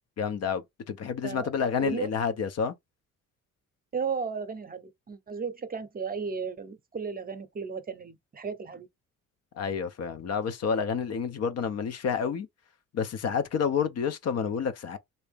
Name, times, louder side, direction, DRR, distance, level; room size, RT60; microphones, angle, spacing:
voice 1, 0.2-2.8 9.5-12.5 12.9-15.0, left 6 dB, 55° left, 0.6 m, -29 dB
voice 2, 3.9-8.9, right 5 dB, 30° right, 0.7 m, -34 dB
3.4 x 2.7 x 3.4 m
cardioid pair, 90°, 30 cm